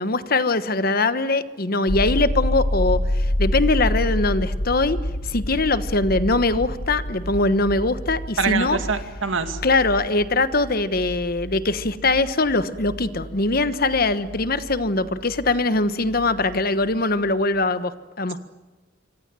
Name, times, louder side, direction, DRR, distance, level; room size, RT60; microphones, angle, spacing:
voice 1, 0.0-5.0 5.2-8.8 9.6-18.4, left 2 dB, 50° left, 12 dB, 1.2 m, -22 dB
sound 1, 1.9-15.7 16.0-16.9, left 1 dB, 75° left, 2.4 m, -28 dB
voice 2, 8.4-9.6, right 5 dB, 75° right, 7 dB, 2.4 m, -24 dB
26.5 x 25.0 x 7.7 m, 1.2 s
head